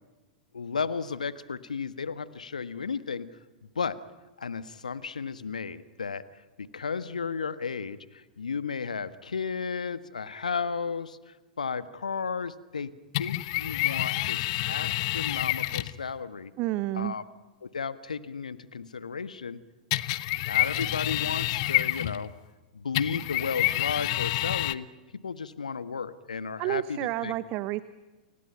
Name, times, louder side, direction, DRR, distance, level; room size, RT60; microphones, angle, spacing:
voice 1, 0.5-3.3 3.7-4.0 4.4-12.9 13.2-16.5 16.9-17.2 17.6-19.6 20.4-22.3 22.7-24.9 25.2-27.3, left 5 dB, 75° left, 14 dB, 1.5 m, -34 dB
sound 1, 13.1-16.0 19.9-22.3 22.9-24.7, left 18 dB, 45° left, 1.1 m, -28 dB
voice 2, 16.6-17.1 26.6-27.8, right 16 dB, 40° right, 15 dB, 1.0 m, -30 dB
30.0 x 29.5 x 5.8 m, 1.2 s
figure-of-eight pair, 95°, 4 cm